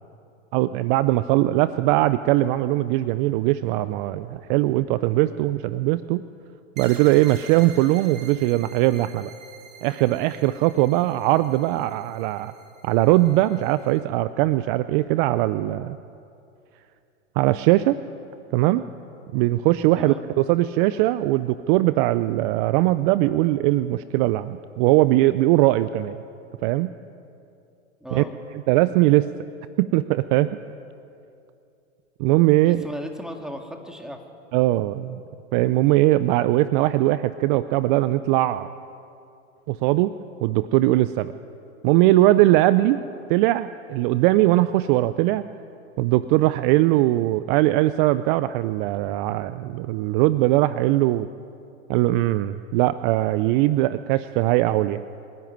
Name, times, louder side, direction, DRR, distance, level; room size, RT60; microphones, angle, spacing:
voice 1, 0.5-6.2 6.8-9.3 9.8-12.5 12.8-16.0 17.4-18.0 18.5-18.8 19.3-26.2 26.6-26.9 28.1-28.2 28.7-29.3 29.8-30.5 32.2-32.8 34.5-35.2 35.5-38.7 39.7-40.1 40.4-41.3 41.8-43.0 43.3-45.4 46.0-51.3 51.9-55.0, right 16 dB, 45° right, 14 dB, 0.6 m, -20 dB
sound 1, 6.8-14.0, right 5 dB, 85° right, 2.8 m, -46 dB
voice 2, 28.0-28.3 32.7-34.2 42.9-43.0, equal, ahead, 3 dB, 2.1 m, -36 dB
25.0 x 11.5 x 9.2 m, 2.6 s
hypercardioid pair, 110°, 37 cm